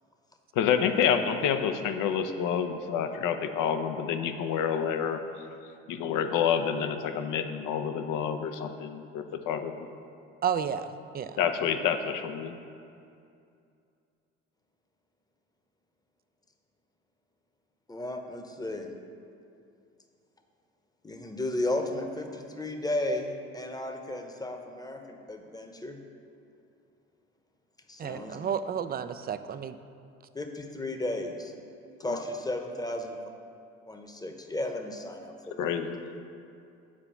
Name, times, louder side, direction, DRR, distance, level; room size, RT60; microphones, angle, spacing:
voice 1, 0.5-5.2 5.9-9.7 11.4-12.6 32.0-32.2 35.6-36.0, left 7 dB, 60° left, 8 dB, 0.8 m, -28 dB
voice 2, 10.4-11.4 28.0-29.8, right 8 dB, 25° right, 11 dB, 0.4 m, -32 dB
voice 3, 17.9-18.9 21.0-26.0 27.9-28.4 30.3-31.5 32.0-33.2 33.9-35.8, left 1 dB, 10° left, 5 dB, 1.0 m, -34 dB
7.5 x 4.8 x 7.0 m, 2.5 s
hypercardioid pair, 60°, 36 cm